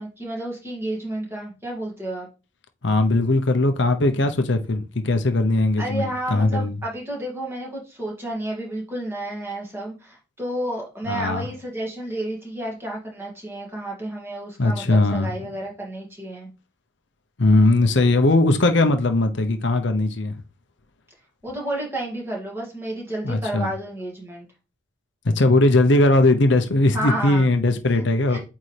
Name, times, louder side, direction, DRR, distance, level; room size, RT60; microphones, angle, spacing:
voice 1, 0.0-2.3 5.8-16.5 21.4-24.5 26.9-27.5 27.9-28.4, right 1 dB, 10° right, 2.2 m, -31 dB
voice 2, 2.8-6.8 11.1-11.5 14.6-15.3 17.4-20.3 23.2-23.7 25.3-28.4, left 2 dB, 60° left, 0.8 m, -19 dB
8.5 x 3.6 x 3.3 m
head